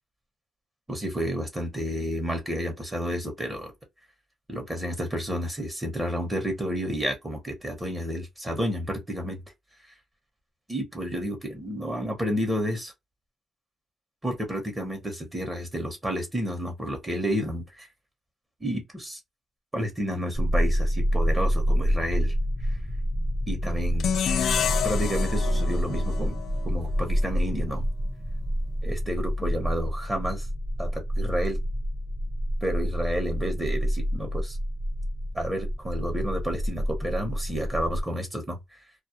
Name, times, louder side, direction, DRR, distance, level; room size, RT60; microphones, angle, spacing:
voice 1, 0.9-3.7 4.5-9.4 10.7-12.9 14.2-17.9 18.6-19.2 19.7-22.3 23.5-24.1 24.8-26.4 26.6-27.8 28.8-30.5 30.8-31.6 32.6-34.6 35.3-38.6, equal, 15° right, 0.9 m, -30 dB
sound 1, 20.3-38.0, equal, 10° left, 0.6 m, -28 dB
sound 2, 24.0-27.2, left 8 dB, 70° left, 0.3 m, -29 dB
2.3 x 2.0 x 2.7 m
cardioid pair, 100°, 0 cm